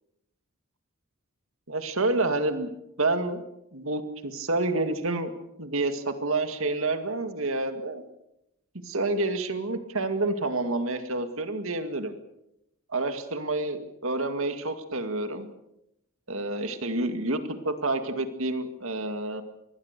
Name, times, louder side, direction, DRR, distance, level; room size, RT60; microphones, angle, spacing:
voice 1, 1.7-2.7 3.0-3.4 3.7-5.3 5.6-8.0 8.8-12.1 12.9-15.5 16.3-17.4 17.6-19.4, right 2 dB, 65° right, 8 dB, 2.1 m, -28 dB
25.5 x 20.5 x 6.7 m, 0.84 s
head